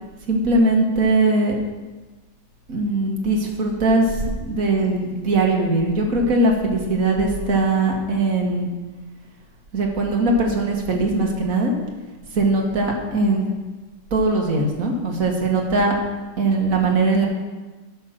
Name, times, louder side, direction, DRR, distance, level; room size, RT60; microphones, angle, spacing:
voice 1, 0.3-1.6 2.7-8.7 9.7-11.7 12.3-13.5 14.1-16.0 16.4-17.3, right 2 dB, 55° right, 0 dB, 1.9 m, -20 dB
10.5 x 6.4 x 6.0 m, 1.2 s
omnidirectional pair, 1.9 m